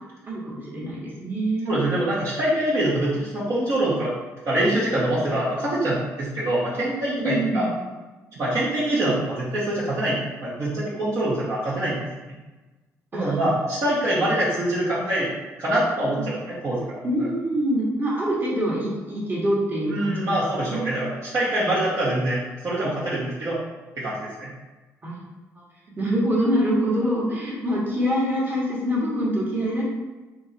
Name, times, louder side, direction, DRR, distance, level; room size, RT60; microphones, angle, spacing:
voice 1, 0.2-1.8 7.2-7.7 13.1-13.4 17.0-20.3 20.7-20.9 25.0-25.2 26.0-29.8, equal, 30° right, -5 dB, 1.4 m, -25 dB
voice 2, 1.6-4.1 4.5-7.7 8.4-12.0 13.1-15.3 15.6-17.3 19.9-23.6 24.0-24.5, right 1 dB, 50° right, -8 dB, 1.0 m, -24 dB
3.7 x 2.9 x 2.7 m, 1.2 s
cardioid pair, 80°, 7 cm